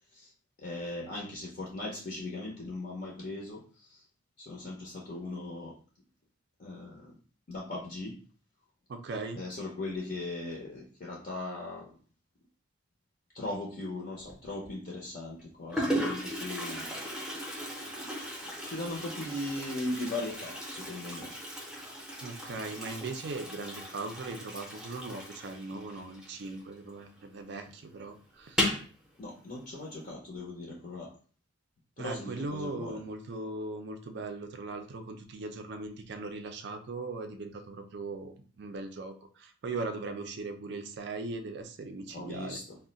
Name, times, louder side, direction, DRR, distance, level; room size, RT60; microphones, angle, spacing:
voice 1, 0.6-4.0 4.4-5.7 6.6-7.2 7.5-8.2 9.4-11.9 13.3-16.9 18.7-21.3 29.2-31.1 32.0-33.0 42.1-42.8, left 2 dB, 45° left, -3 dB, 0.5 m, -38 dB
voice 2, 8.9-9.4 22.2-28.7 32.0-42.6, right 3 dB, 55° right, 7 dB, 0.4 m, -39 dB
Toilet flush, 14.2-14.7 15.4-15.5 15.7-27.0 27.3-27.4 27.7-27.8 28.4-28.9, equal, 5° right, 0.6 m, -36 dB
2.3 x 2.1 x 3.8 m, 0.41 s
head